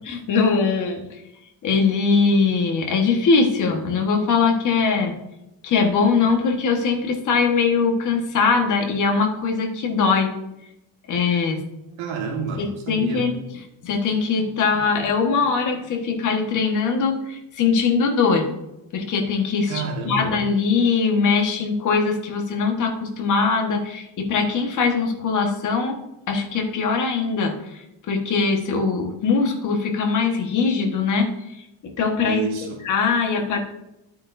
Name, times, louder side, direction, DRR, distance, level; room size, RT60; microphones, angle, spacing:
voice 1, 0.1-1.0 1.6-5.1 5.6-10.3 11.1-11.6 12.6-13.3 13.8-18.5 18.9-26.0 26.3-32.4 32.8-33.6, left 4 dB, 35° left, 2 dB, 1.5 m, -21 dB
voice 2, 12.0-13.3 19.7-20.4 32.2-32.8, right 4 dB, 65° right, 1 dB, 1.7 m, -29 dB
13.0 x 8.6 x 2.7 m, 0.89 s
cardioid pair, 175°, 49 cm